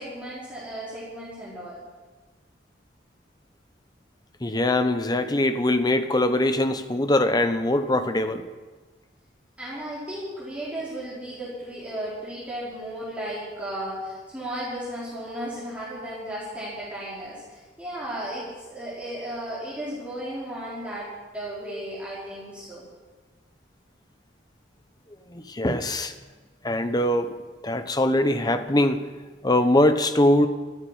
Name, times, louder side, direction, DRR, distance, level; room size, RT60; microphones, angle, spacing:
voice 1, 0.0-1.8 9.6-21.1 21.3-22.8, right 1 dB, 5° right, -9 dB, 4.3 m, -35 dB
voice 2, 4.4-8.4 25.3-26.1 26.6-27.3 27.6-29.0 29.4-30.5, left 1 dB, 20° left, 9 dB, 1.0 m, -22 dB
14.0 x 9.8 x 9.6 m, 1.3 s
head